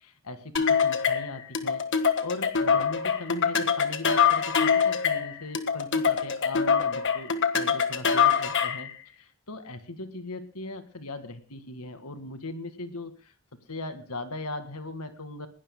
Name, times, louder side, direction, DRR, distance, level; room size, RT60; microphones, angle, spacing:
voice 1, 0.0-1.8 2.2-8.9 9.2-13.3 13.7-15.5, left 2 dB, 85° left, 9 dB, 2.0 m, -39 dB
sound 1, 0.6-8.9, left 6 dB, 55° left, 1.5 m, -24 dB
21.0 x 17.5 x 2.2 m, 0.34 s
head